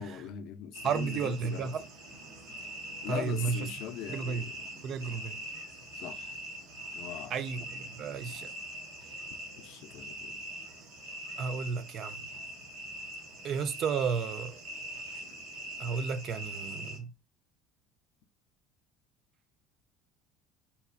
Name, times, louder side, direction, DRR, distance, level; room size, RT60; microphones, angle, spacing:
voice 1, 0.0-1.7 3.0-4.5 5.9-6.4 6.9-7.3 9.6-10.4, left 9 dB, 65° left, 0.4 m, -41 dB
sound 1, 0.7-17.0, equal, 80° right, 1.0 m, -43 dB
voice 2, 0.8-1.9 3.1-3.7 4.1-4.5 4.8-5.4 7.3-8.5 11.4-12.3 13.4-14.6 15.8-17.1, right 6 dB, 45° right, 0.3 m, -33 dB
2.8 x 2.3 x 2.3 m
cardioid pair, 120°, 0 cm